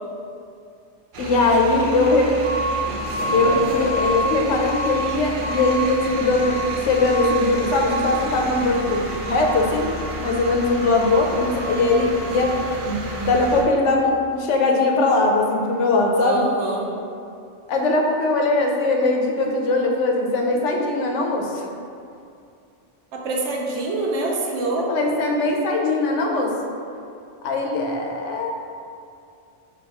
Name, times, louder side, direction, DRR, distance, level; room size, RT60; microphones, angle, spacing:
sound 1, 1.1-13.6, right 1 dB, 60° right, 0.6 m, -28 dB
voice 1, 1.2-2.3 3.3-12.6 12.8-16.4 17.7-21.7 24.9-26.5 27.4-28.5, left 2 dB, 85° left, 1 dB, 0.9 m, -20 dB
voice 2, 16.2-16.9 23.1-24.9, right 2 dB, 80° right, -1 dB, 0.9 m, -25 dB
3.4 x 2.6 x 4.6 m, 2.5 s
omnidirectional pair, 1.2 m